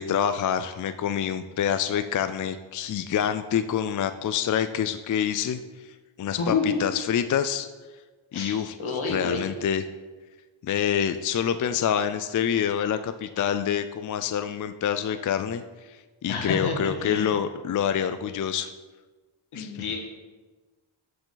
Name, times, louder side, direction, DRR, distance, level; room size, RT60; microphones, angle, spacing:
voice 1, 0.0-7.7 8.3-8.8 9.1-9.8 10.6-18.7 19.5-19.8, left 8 dB, 45° left, 10 dB, 0.4 m, -27 dB
voice 2, 6.3-6.8 8.3-9.4 16.3-17.4 19.5-20.0, left 4 dB, 80° left, 1 dB, 1.9 m, -29 dB
13.5 x 4.8 x 3.9 m, 1.3 s
wide cardioid pair, 110°, 48 cm